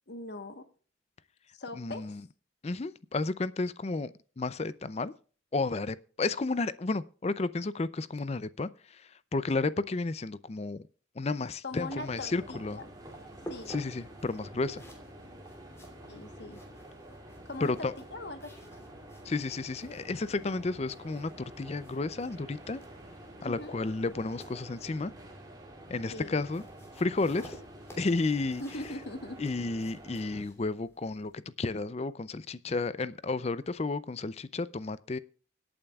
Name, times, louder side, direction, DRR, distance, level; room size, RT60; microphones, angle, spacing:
voice 1, 0.1-0.6 1.5-2.2 11.6-12.8 13.5-13.7 16.1-16.6 17.4-18.7 23.4-23.7 26.1-26.4 28.6-29.4, left 2 dB, 55° left, 1.2 m, -41 dB
voice 2, 1.7-2.2 2.6-5.1 5.5-10.9 11.2-12.8 13.7-14.8 17.6-17.9 19.2-21.3 21.6-22.8 23.4-25.1 25.9-26.6 27.0-27.6 28.0-28.6 29.4-35.2, left 3 dB, 35° left, 0.4 m, -32 dB
sound 1, 11.7-30.4, right 1 dB, 20° right, 2.6 m, -49 dB
sound 2, 12.5-31.3, equal, 15° left, 2.9 m, -53 dB
25.0 x 8.8 x 2.4 m
head